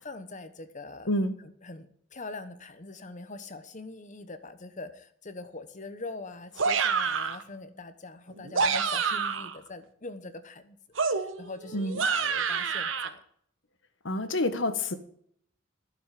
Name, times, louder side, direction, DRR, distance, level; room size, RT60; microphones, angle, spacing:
voice 1, 0.0-1.1 1.6-13.2, left 3 dB, 40° left, 11 dB, 1.1 m, -43 dB
voice 2, 1.1-1.4 11.7-12.0 14.0-14.9, left 1 dB, 65° left, 11 dB, 1.4 m, -28 dB
sound 1, 6.6-7.4 8.4-9.6 11.0-13.1, right 5 dB, 70° right, 1.2 m, -28 dB
12.0 x 7.5 x 8.3 m, 0.63 s
head